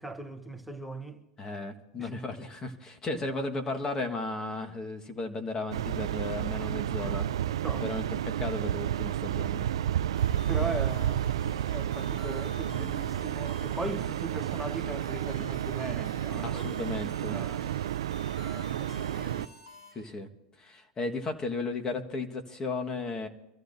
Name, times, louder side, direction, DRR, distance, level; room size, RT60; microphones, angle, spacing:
voice 1, 0.0-1.3 2.0-2.1 7.0-7.2 7.6-7.9 10.5-11.3 11.7-16.6 17.3-17.9 18.4-19.5, right 2 dB, ahead, 1.1 m, -39 dB
voice 2, 1.4-7.3 7.7-9.7 16.4-17.4 19.9-20.3 20.6-23.3, left 3 dB, 25° left, 1.6 m, -35 dB
sound 1, 5.7-19.5, right 11 dB, 85° right, 0.4 m, -31 dB
sound 2, 10.1-19.9, left 3 dB, 85° left, 3.7 m, -51 dB
24.5 x 14.5 x 2.7 m
hypercardioid pair, 110°, 3 cm